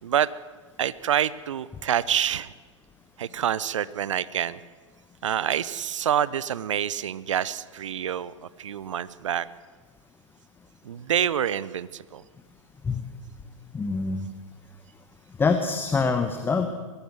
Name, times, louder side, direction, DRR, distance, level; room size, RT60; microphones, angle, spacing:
voice 1, 0.8-2.5 3.2-4.6 5.2-9.5 10.8-12.2, right 10 dB, 70° right, 19 dB, 0.7 m, -27 dB
voice 2, 13.7-14.2 15.4-16.7, left 4 dB, 15° left, 7 dB, 1.2 m, -24 dB
22.5 x 16.0 x 7.8 m, 1.5 s
figure-of-eight pair, 100°, 17 cm